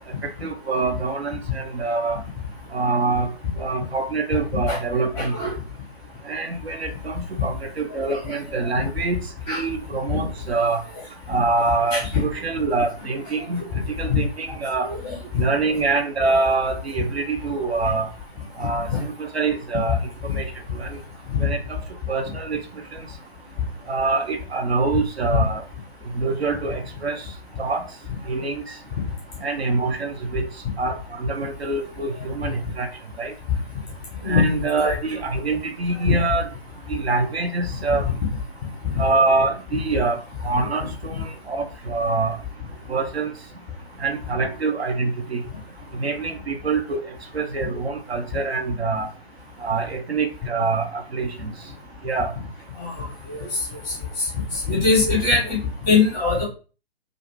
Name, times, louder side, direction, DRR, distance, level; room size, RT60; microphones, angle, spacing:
voice 1, 0.2-2.2 2.7-3.3 3.6-5.3 6.3-9.2 9.5-10.8 11.3-13.6 14.0-14.9 15.4-18.1 18.6-20.0 20.3-20.5 20.8-20.9 21.4-21.8 22.1-22.6 23.9-25.6 26.1-27.2 27.6-27.8 28.3-28.6 29.4-30.5 30.8-32.9 33.2-33.3 34.3-36.5 36.9-38.0 39.0-40.2 40.4-42.4 42.9-43.3 44.0-45.4 45.9-47.0 47.3-49.1 49.6-51.5 52.0-52.3, right 3 dB, 75° right, 5 dB, 0.6 m, -25 dB
voice 2, 5.1-5.5 8.2-8.4 9.5-9.6 10.1-10.2 11.9-12.2 13.5-13.8 14.1-14.2 14.8-15.2 18.6-19.0 21.3-21.4 25.3-25.4 34.2-35.0 37.9-38.0 38.9-39.0 40.5-40.7 52.8-53.6 53.9-56.4, left 4 dB, 10° left, -5 dB, 0.6 m, -23 dB
2.4 x 2.4 x 3.1 m, 0.35 s
figure-of-eight pair, 135°, 32 cm